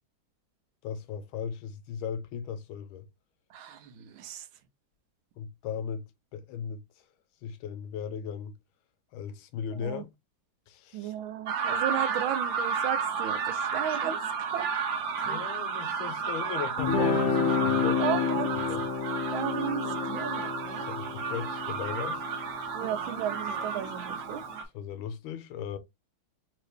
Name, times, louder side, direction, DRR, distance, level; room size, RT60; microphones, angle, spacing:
voice 1, 0.8-3.1 5.4-6.8 7.4-8.6 9.1-10.1 10.7-11.1 15.2-18.1 18.5-18.8 20.8-22.2 24.7-25.8, left 7 dB, 80° left, 1.4 m, -37 dB
voice 2, 3.5-4.5 9.8-10.0 10.9-14.2 14.5-14.7 18.0-18.6 19.3-19.8 20.1-20.3 22.7-24.4, right 10 dB, 90° right, 1.5 m, -34 dB
sound 1, 11.5-24.6, right 6 dB, 70° right, 1.6 m, -32 dB
Guitar, 16.8-23.9, left 6 dB, 65° left, 0.9 m, -30 dB
3.7 x 2.8 x 3.3 m
omnidirectional pair, 2.2 m